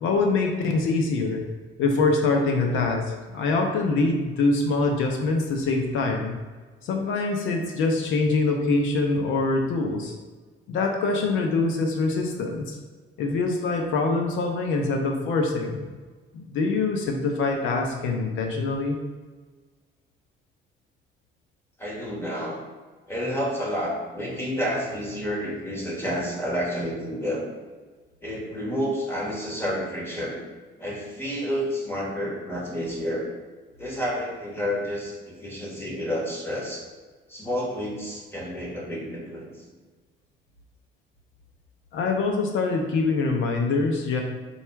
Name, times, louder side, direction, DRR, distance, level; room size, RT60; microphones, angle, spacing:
voice 1, 0.0-1.4 1.8-6.4 6.8-10.2 10.7-12.8 13.2-15.8 16.3-19.0 41.9-44.2, left 3 dB, 85° left, 2 dB, 0.6 m, -24 dB
voice 2, 21.8-22.6 23.1-27.5 28.2-30.4 30.8-33.3 33.8-36.8 37.3-39.7, equal, 10° left, -3 dB, 1.3 m, -30 dB
4.1 x 2.4 x 4.4 m, 1.4 s
cardioid pair, 90°, 20 cm